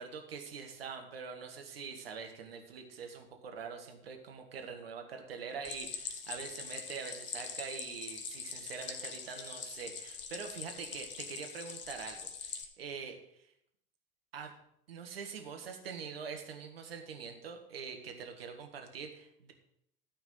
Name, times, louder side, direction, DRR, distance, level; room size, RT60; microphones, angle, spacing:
voice 1, 0.0-13.5 14.3-14.5 14.9-19.5, right 6 dB, 75° right, 4 dB, 1.6 m, -44 dB
Stream, 5.6-12.6, left 6 dB, 35° left, 1.5 m, -43 dB
13.0 x 4.8 x 7.6 m, 0.74 s
figure-of-eight pair, 75°, 30 cm